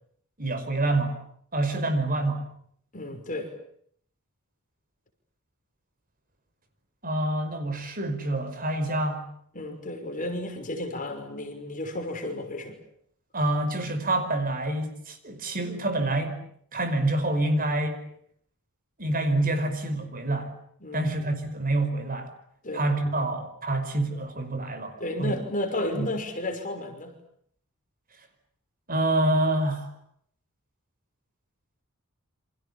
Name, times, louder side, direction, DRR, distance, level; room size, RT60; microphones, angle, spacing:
voice 1, 0.4-1.2 1.5-2.5 7.0-9.2 13.3-16.4 16.7-18.0 19.0-20.5 20.9-22.3 22.7-25.4 25.9-26.1 28.9-29.9, right 2 dB, 40° right, 9 dB, 5.1 m, -27 dB
voice 2, 2.9-3.5 9.5-12.8 20.8-21.1 22.6-22.9 25.0-27.1, left 1 dB, 35° left, 5 dB, 5.9 m, -32 dB
29.0 x 26.5 x 7.2 m, 0.67 s
head